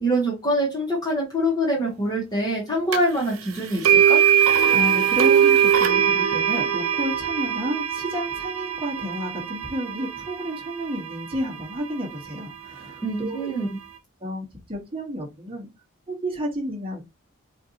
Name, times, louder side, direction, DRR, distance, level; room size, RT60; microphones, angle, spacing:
voice 1, 0.0-4.2 13.0-13.7, equal, 20° left, -4 dB, 1.2 m, -24 dB
sound 1, 2.9-3.0 3.8-11.9, right 9 dB, 85° right, 0.6 m, -21 dB
voice 2, 4.6-13.5 14.2-15.7 16.1-17.0, equal, 25° right, 0 dB, 1.2 m, -31 dB
4.4 x 2.6 x 2.7 m, 0.24 s
head